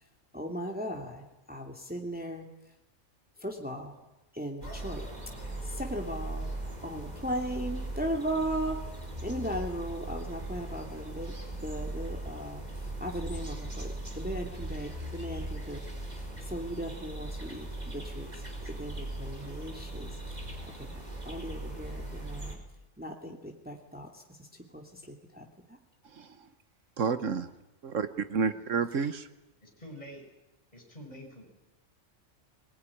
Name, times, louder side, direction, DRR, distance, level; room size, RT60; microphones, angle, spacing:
voice 1, 0.3-2.5 3.4-3.9 4.3-5.1 5.6-6.5 6.8-8.9 9.2-11.3 11.6-15.8 16.1-20.4 20.7-22.6 23.0-25.8, equal, 5° right, 2 dB, 2.6 m, -37 dB
sound 1, 4.6-22.6, right 1 dB, 30° right, 4.4 m, -39 dB
voice 2, 27.0-27.5 27.8-29.3, right 5 dB, 75° right, 11 dB, 1.5 m, -30 dB
voice 3, 28.1-28.5 28.8-28.9 29.6-30.2 30.7-31.4, equal, 30° left, 3 dB, 6.2 m, -48 dB
22.0 x 21.0 x 10.0 m, 0.94 s
omnidirectional pair, 1.3 m